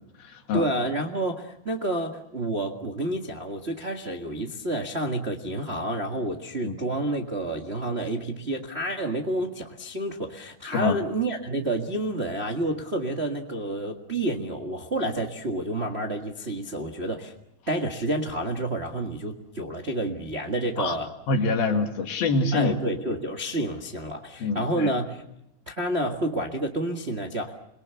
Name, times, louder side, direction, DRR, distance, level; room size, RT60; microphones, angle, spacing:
voice 1, 0.5-17.3 17.7-21.1 22.5-25.2 25.7-27.5, right 1 dB, 45° right, 1 dB, 0.8 m, -29 dB
voice 2, 21.3-22.7 24.4-24.9, left 3 dB, 75° left, 4 dB, 4.1 m, -25 dB
28.5 x 22.5 x 7.1 m, 0.80 s
omnidirectional pair, 4.3 m